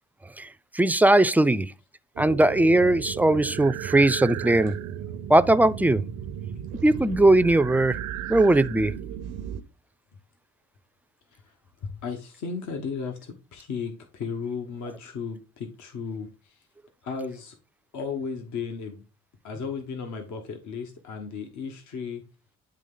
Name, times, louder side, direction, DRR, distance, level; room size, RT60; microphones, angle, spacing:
voice 1, 0.7-1.7 2.2-4.7 5.3-6.0 6.8-8.0 8.3-8.9, right 1 dB, 5° right, 0.3 m, -19 dB
sound 1, 2.2-9.6, right 10 dB, 90° right, 0.7 m, -35 dB
voice 2, 11.8-16.6 17.0-17.6 17.9-19.0 19.4-22.2, left 5 dB, 70° left, 1.2 m, -35 dB
10.0 x 3.3 x 3.8 m
cardioid pair, 90°, 30 cm